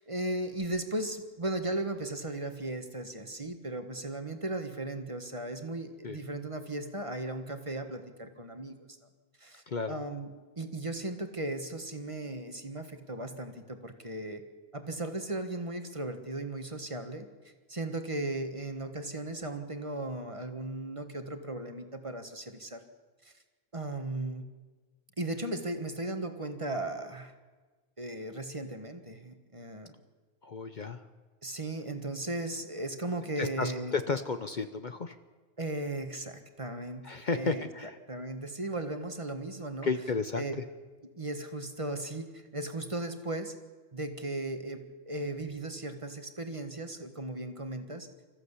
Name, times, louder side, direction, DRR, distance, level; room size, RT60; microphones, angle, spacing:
voice 1, 0.0-9.0 9.4-10.3 10.6-14.4 14.7-17.3 17.7-22.8 23.2-23.3 23.7-24.5 25.2-27.3 28.0-29.9 31.4-33.9 35.6-37.6 38.1-39.9 40.4-40.6 41.2-43.5 43.9-48.1, right 2 dB, 30° right, 7 dB, 1.6 m, -36 dB
voice 2, 9.7-10.0 30.4-31.0 33.4-35.2 37.0-38.0 39.8-40.4, left 4 dB, 45° left, 9 dB, 0.9 m, -33 dB
26.0 x 14.5 x 8.4 m, 1.3 s
omnidirectional pair, 1.2 m